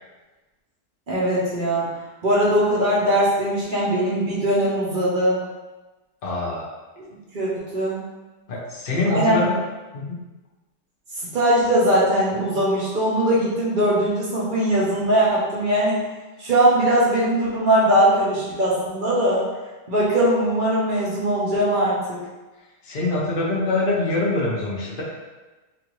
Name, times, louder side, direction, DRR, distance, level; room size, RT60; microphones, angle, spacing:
voice 1, 1.1-2.0 2.2-5.4 7.3-8.0 9.1-9.4 11.3-16.0 16.4-19.4 19.9-22.2, right 1 dB, 50° right, -7 dB, 0.6 m, -20 dB
voice 2, 6.2-6.7 8.5-9.6 9.9-10.2 22.8-25.0, left 2 dB, 50° left, -5 dB, 0.7 m, -24 dB
3.5 x 2.4 x 3.0 m, 1.2 s
omnidirectional pair, 1.6 m